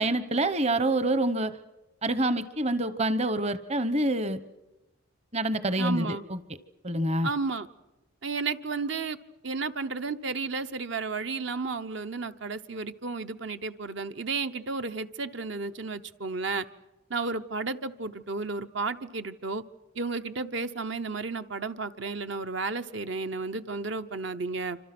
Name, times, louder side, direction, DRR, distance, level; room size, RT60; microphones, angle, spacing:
voice 1, 0.0-1.5 2.0-4.4 5.3-6.4 6.8-7.3, right 1 dB, 30° right, 13 dB, 1.0 m, -26 dB
voice 2, 5.8-6.2 7.2-7.7 8.2-9.2 9.4-16.7 17.1-19.6 19.9-24.8, right 4 dB, 60° right, 10 dB, 0.8 m, -32 dB
27.5 x 26.0 x 6.1 m, 1.0 s
head